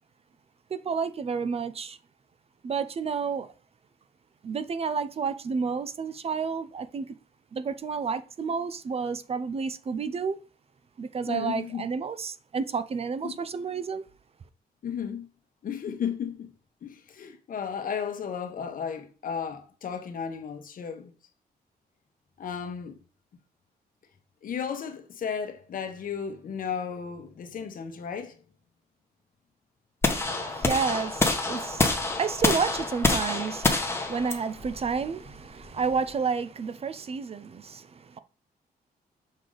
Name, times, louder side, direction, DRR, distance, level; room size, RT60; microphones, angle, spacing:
voice 1, 0.7-2.0 2.6-3.5 4.4-7.1 7.5-10.4 11.0-14.0 30.2-38.2, right 5 dB, 40° right, 0.5 m, -30 dB
voice 2, 11.3-11.8 13.2-13.3 14.8-15.3 15.6-16.5 16.8-21.1 22.4-23.0 24.4-28.4, left 7 dB, 60° left, 1.1 m, -34 dB
sound 1, 30.0-36.1, left 2 dB, 15° left, 1.1 m, -27 dB
6.6 x 4.7 x 3.9 m
cardioid pair, 135°, 16 cm